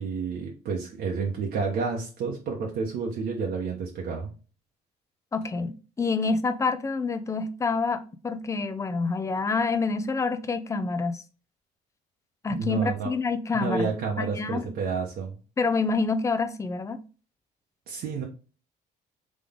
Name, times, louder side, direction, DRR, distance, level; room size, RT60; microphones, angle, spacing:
voice 1, 0.0-4.3 12.5-13.1 13.5-15.4 17.9-18.2, right 5 dB, 70° right, 1.0 m, -30 dB
voice 2, 5.3-11.2 12.4-13.9 14.2-14.7 15.6-17.0, left 4 dB, 20° left, 0.5 m, -27 dB
3.7 x 3.2 x 3.7 m
cardioid pair, 110°, 17 cm